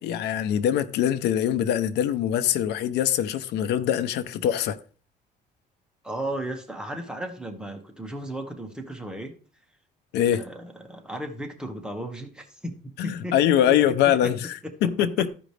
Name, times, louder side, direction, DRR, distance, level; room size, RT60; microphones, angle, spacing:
voice 1, 0.0-4.8 10.1-10.4 13.0-15.3, left 10 dB, 80° left, 0.8 m, -23 dB
voice 2, 6.0-9.3 10.3-13.6 14.2-14.3, right 1 dB, 5° right, 1.6 m, -35 dB
14.0 x 5.2 x 3.4 m
cardioid pair, 110°, 17 cm